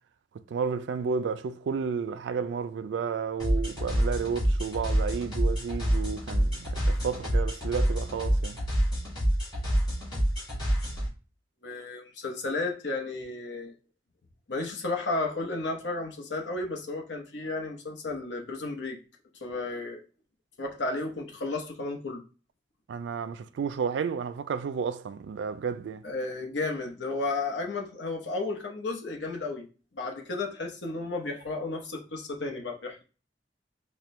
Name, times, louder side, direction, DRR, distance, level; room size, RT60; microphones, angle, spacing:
voice 1, 0.3-8.6 22.9-26.0, right 6 dB, 85° right, 0.3 m, -32 dB
sound 1, 3.4-11.1, equal, 25° left, 2.0 m, -27 dB
voice 2, 11.6-13.7 14.5-19.0 19.4-20.0 20.6-22.2 26.0-29.7 29.9-33.0, left 3 dB, 90° left, 0.9 m, -33 dB
4.3 x 2.2 x 3.1 m
head